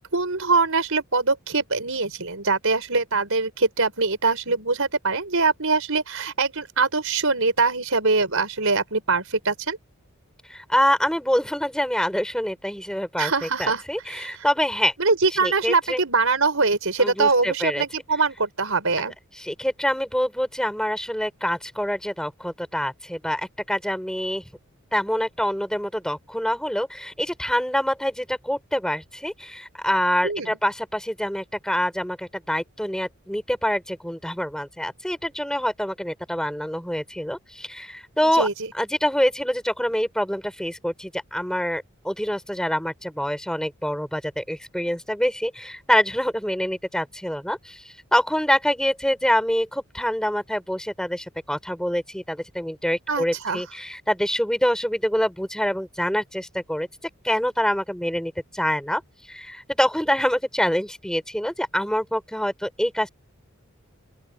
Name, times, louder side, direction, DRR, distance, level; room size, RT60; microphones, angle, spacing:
voice 1, 0.1-9.8 13.2-13.8 14.1-14.4 15.0-19.1 30.2-30.6 38.3-38.5 53.1-53.6, right 4 dB, 65° right, 5.1 m, -23 dB
voice 2, 10.5-14.9 15.4-16.0 17.0-17.8 19.4-24.4 24.9-38.5 38.7-56.9 57.2-59.0 59.3-63.1, equal, 5° left, 5.2 m, -25 dB
open air
head